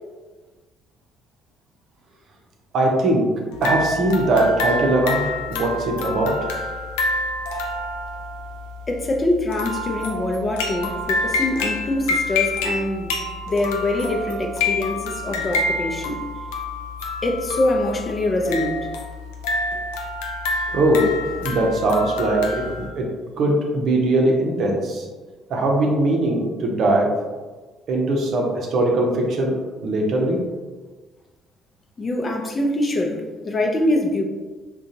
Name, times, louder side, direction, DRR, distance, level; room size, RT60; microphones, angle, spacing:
voice 1, 2.7-3.3 3.6-6.4 20.7-23.1 23.4-25.0 25.5-27.1 27.9-29.5 29.8-30.4, right 1 dB, 60° right, 0 dB, 0.6 m, -20 dB
sound 1, 3.5-22.9, left 2 dB, 80° left, 0.4 m, -27 dB
voice 2, 8.9-13.1 13.5-16.2 17.2-18.9 32.0-34.2, left 1 dB, 35° left, 2 dB, 0.6 m, -24 dB
3.6 x 2.3 x 2.7 m, 1.3 s
hypercardioid pair, 55°, 0 cm